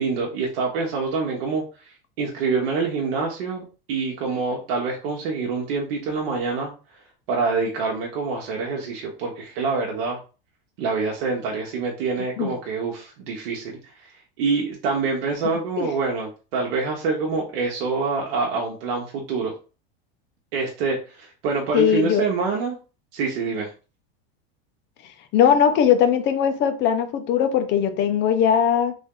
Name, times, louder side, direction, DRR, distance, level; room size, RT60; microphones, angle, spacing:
voice 1, 0.0-1.6 2.2-6.7 7.3-10.2 10.8-13.8 14.4-19.5 20.5-22.8 23.1-23.7, right 4 dB, 75° right, 1.1 m, -26 dB
voice 2, 21.7-22.3 25.3-29.0, left 8 dB, 35° left, 0.7 m, -19 dB
3.4 x 2.6 x 3.7 m
supercardioid pair, 140°, 30 cm